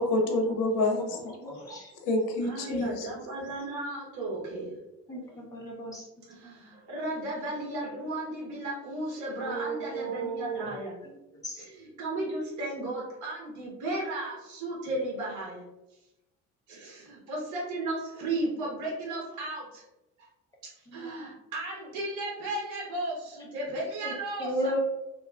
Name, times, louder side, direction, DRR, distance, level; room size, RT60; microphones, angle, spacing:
voice 1, 0.0-1.2 2.0-3.1, left 2 dB, 90° left, 3 dB, 0.6 m, -27 dB
voice 2, 1.0-1.9 5.1-6.1 9.4-10.7 11.4-11.6 20.9-21.2 24.0-24.1 24.4-24.8, right 1 dB, 10° left, -2 dB, 0.6 m, -35 dB
voice 3, 1.5-2.0 2.4-4.7 5.2-5.4 6.3-10.9 11.6-15.6 16.7-19.8 20.2-20.3 20.6-24.8, right 2 dB, 65° right, -3 dB, 1.0 m, -35 dB
2.8 x 2.2 x 2.3 m, 0.94 s
cardioid pair, 120°, 32 cm